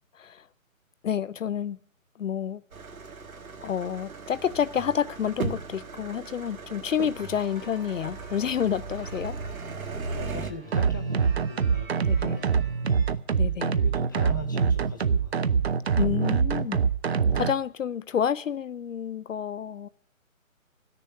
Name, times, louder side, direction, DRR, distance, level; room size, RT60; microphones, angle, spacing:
voice 1, 1.0-1.8 2.2-2.6 3.6-9.4 12.0-12.4 13.4-13.8 16.0-16.8 17.3-19.9, left 8 dB, 65° left, 19 dB, 0.6 m, -29 dB
sound 1, 2.7-10.5, right 4 dB, 85° right, 1.6 m, -37 dB
sound 2, 7.1-13.1, right 3 dB, 10° right, 4.4 m, -49 dB
voice 2, 10.1-15.6, left 3 dB, 15° left, 3 dB, 0.7 m, -42 dB
sound 3, 10.7-17.5, right 6 dB, 50° right, 0.6 m, -24 dB
13.5 x 6.8 x 9.9 m, 0.62 s
hypercardioid pair, 165°, 41 cm